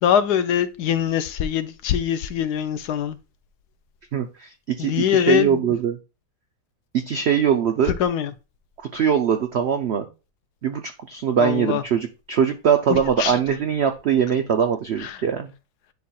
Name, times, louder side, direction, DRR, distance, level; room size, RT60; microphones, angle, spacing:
voice 1, 0.0-3.2 4.8-5.6 8.0-8.3 11.4-11.8 12.9-13.4 15.0-15.2, left 9 dB, 75° left, 1.1 m, -23 dB
voice 2, 4.1-4.5 4.8-6.0 6.9-7.9 8.9-10.1 10.6-10.8 11.1-15.5, right 8 dB, 80° right, 0.5 m, -21 dB
10.5 x 4.3 x 2.3 m
omnidirectional pair, 1.8 m